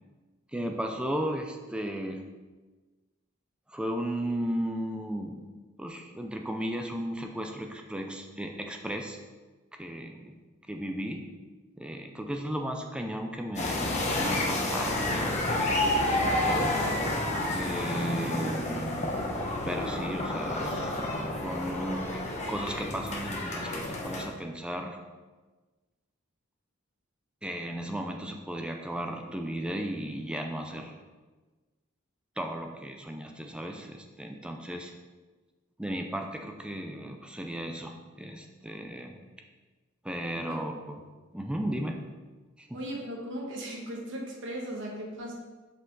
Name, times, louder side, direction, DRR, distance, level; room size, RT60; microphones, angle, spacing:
voice 1, 0.5-2.2 3.7-5.4 5.8-9.2 9.7-10.4 10.7-11.3 11.8-16.8 17.5-19.2 19.6-21.0 21.4-25.0 27.4-31.0 32.4-34.9 35.8-39.2 40.0-41.0 41.3-42.0 42.6-42.7, right 1 dB, 5° right, 3 dB, 0.4 m, -35 dB
sound 1, 13.6-24.3, left 1 dB, 35° left, 1.0 m, -30 dB
voice 2, 42.7-45.3, right 1 dB, 60° right, -1 dB, 1.3 m, -37 dB
5.9 x 5.0 x 3.8 m, 1.3 s
head